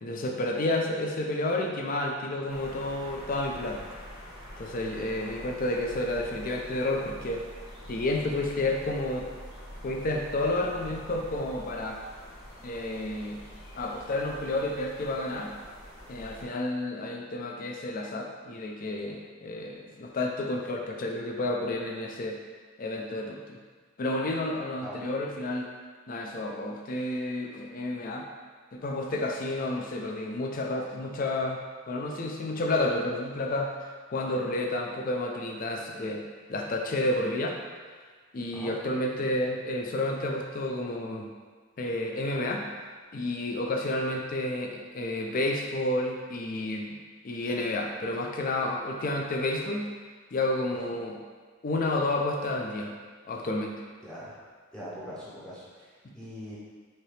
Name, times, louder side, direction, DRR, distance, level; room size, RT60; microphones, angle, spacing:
voice 1, 0.0-3.9 4.6-7.4 7.9-9.3 9.8-12.0 12.6-13.4 13.7-15.5 16.1-22.4 22.8-23.6 24.0-25.7 26.1-28.3 28.7-31.6 31.9-36.2 36.5-37.6 38.3-41.3 41.8-42.6 43.1-46.9 47.2-49.9 50.3-51.2 51.6-52.9 53.2-53.8, left 1 dB, 40° left, 1 dB, 0.4 m, -30 dB
sound 1, 2.5-16.4, equal, 60° left, 1.3 m, -45 dB
voice 2, 54.0-54.4 54.7-56.6, equal, 5° left, -9 dB, 0.7 m, -42 dB
4.4 x 2.8 x 3.2 m, 1.5 s
head